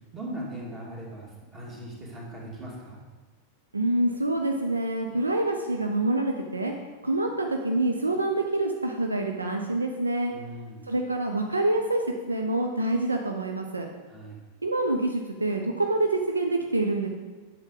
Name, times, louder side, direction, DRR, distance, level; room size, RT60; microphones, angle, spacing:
voice 1, 0.1-3.0 10.3-10.9 14.1-14.4, right 1 dB, 25° right, -3 dB, 2.2 m, -39 dB
voice 2, 3.7-6.7 7.0-10.3 10.9-13.9 14.6-17.1, right 2 dB, 80° right, 3 dB, 0.5 m, -26 dB
7.9 x 5.9 x 3.9 m, 1.3 s
figure-of-eight pair, 90°, 0 cm